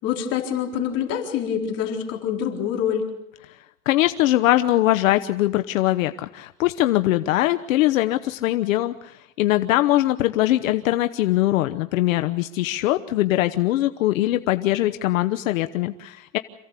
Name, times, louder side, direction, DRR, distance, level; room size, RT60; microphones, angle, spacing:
voice 1, 0.0-3.1, left 8 dB, 35° left, 2 dB, 4.0 m, -26 dB
voice 2, 3.9-16.4, left 15 dB, 70° left, 9 dB, 1.1 m, -21 dB
27.5 x 16.0 x 8.3 m, 0.87 s
supercardioid pair, 155°, 41 cm